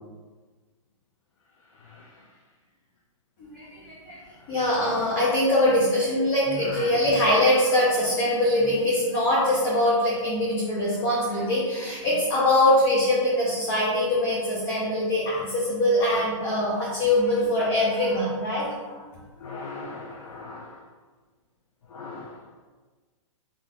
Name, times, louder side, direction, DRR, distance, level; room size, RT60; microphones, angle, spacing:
voice 1, 1.8-2.3 4.4-4.5 19.4-20.8 21.9-22.4, left 3 dB, 85° left, -2 dB, 0.5 m, -40 dB
voice 2, 3.4-4.2 4.5-19.0, left 1 dB, 30° left, -7 dB, 0.6 m, -23 dB
3.4 x 2.4 x 2.4 m, 1.4 s
hypercardioid pair, 160°, 17 cm